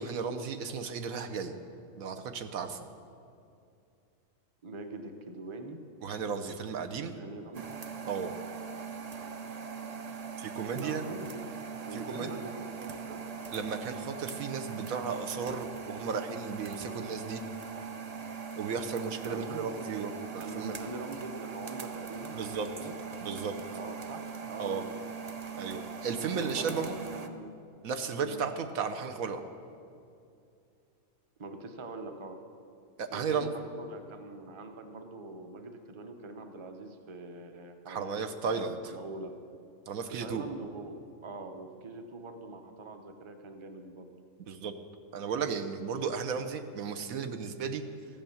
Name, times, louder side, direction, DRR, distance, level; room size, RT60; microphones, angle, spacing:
voice 1, 0.0-1.5 2.0-2.8 6.0-7.2 8.1-8.4 10.4-11.0 11.9-12.4 13.5-17.4 18.6-20.8 22.3-22.7 23.2-23.5 24.6-24.8 25.6-27.0 27.8-29.4 33.0-33.5 37.9-38.9 39.9-40.4 44.5-44.7 45.1-47.8, right 5 dB, 85° right, 6 dB, 1.2 m, -34 dB
voice 2, 4.6-5.8 7.1-7.8 10.8-11.4 11.8-13.2 19.3-23.0 23.7-24.8 26.4-27.5 28.2-28.4 31.4-32.4 33.1-38.2 38.4-39.4 40.2-40.9 41.2-44.1, right 3 dB, 25° right, 6 dB, 0.8 m, -43 dB
sound 1, 7.5-27.3, right 6 dB, 50° right, 0.4 m, -41 dB
14.5 x 8.9 x 7.1 m, 2.5 s
omnidirectional pair, 1.4 m